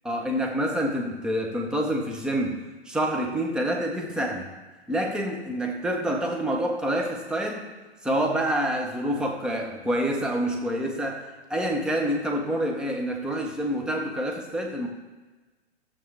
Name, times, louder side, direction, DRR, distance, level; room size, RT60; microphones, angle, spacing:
voice 1, 0.0-2.6 2.8-4.5 4.9-7.7 8.0-14.9, right 1 dB, ahead, 1 dB, 0.9 m, -27 dB
14.0 x 7.2 x 3.4 m, 1.2 s
figure-of-eight pair, 115°, 34 cm